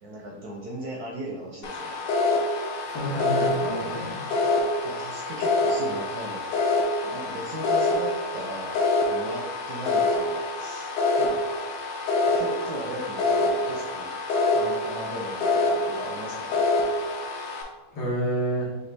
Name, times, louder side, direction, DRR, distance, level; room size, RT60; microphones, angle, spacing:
voice 1, 0.0-1.9 4.8-6.5 7.0-11.4 12.3-14.2 14.5-16.7, right 1 dB, 65° right, -1 dB, 0.9 m, -37 dB
sound 1, 1.6-17.6, left 2 dB, 65° left, 1.3 m, -26 dB
voice 2, 2.9-4.2 17.9-18.7, right 1 dB, 90° left, -6 dB, 2.3 m, -28 dB
6.8 x 2.3 x 3.3 m, 1.2 s
omnidirectional pair, 2.2 m